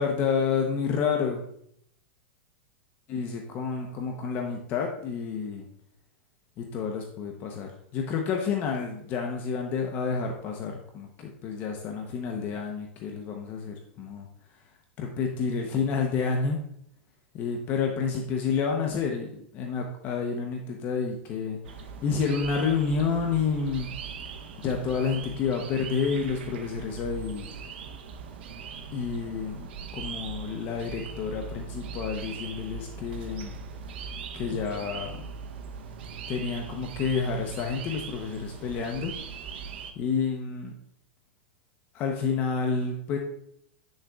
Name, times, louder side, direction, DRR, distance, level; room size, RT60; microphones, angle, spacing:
voice 1, 0.0-1.4 3.1-5.7 6.6-14.3 15.0-16.6 17.4-21.6 22.0-23.9 24.6-27.5 28.9-29.7 29.9-33.6 34.3-35.3 36.3-39.1 40.0-40.7 41.9-43.2, left 5 dB, 30° left, 2 dB, 0.8 m, -29 dB
sound 1, 21.6-39.9, right 6 dB, 70° right, 0.8 m, -40 dB
8.9 x 6.4 x 2.3 m, 0.71 s
supercardioid pair, 155°, 6 cm